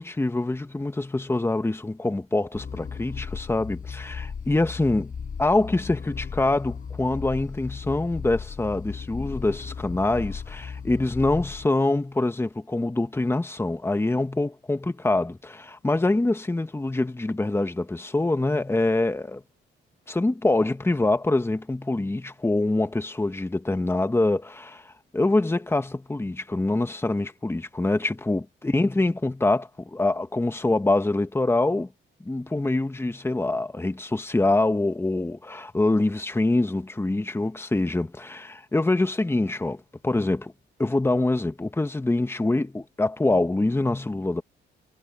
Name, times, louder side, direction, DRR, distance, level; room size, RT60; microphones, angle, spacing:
voice 1, 0.0-5.1 5.4-19.4 20.1-31.9 32.3-40.5 40.8-44.4, left 2 dB, 10° left, 1.6 m, -25 dB
sound 1, 2.5-11.7, left 6 dB, 45° left, 7.9 m, -36 dB
cardioid pair, 90°, 20 cm